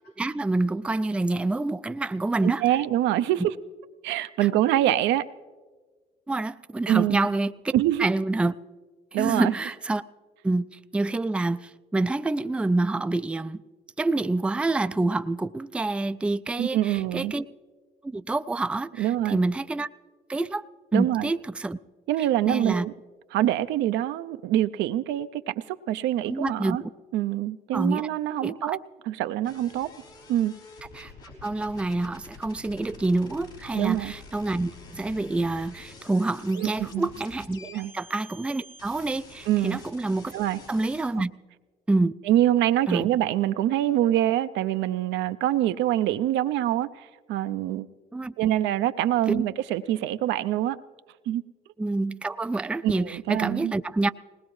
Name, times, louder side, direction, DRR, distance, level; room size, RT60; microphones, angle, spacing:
voice 1, 0.2-2.6 6.3-7.7 8.0-8.5 9.1-10.0 10.4-13.6 14.0-17.4 18.0-19.9 20.3-20.6 20.9-21.8 22.5-22.9 26.3-26.9 27.7-28.1 28.4-28.8 30.9-40.3 40.7-41.3 41.9-42.1 42.9-43.1 48.1-48.3 49.3-49.4 51.8-54.1, right 2 dB, 5° right, 12 dB, 0.3 m, -27 dB
voice 2, 2.4-3.5 4.0-5.2 6.9-7.2 7.7-8.1 9.1-9.5 16.6-17.3 19.0-19.4 20.9-21.3 22.1-22.9 23.3-26.8 27.1-28.8 29.1-29.9 30.3-30.6 33.7-34.1 36.6-37.1 37.7-37.9 39.5-39.8 40.3-40.6 41.2-41.3 42.3-47.9 48.4-50.8 51.3-51.4 52.8-53.7, right 13 dB, 75° right, 11 dB, 0.5 m, -25 dB
sound 1, 29.4-41.1, left 3 dB, 85° left, 4.1 m, -47 dB
20.0 x 19.0 x 3.2 m, 1.4 s
supercardioid pair, 70°, 19 cm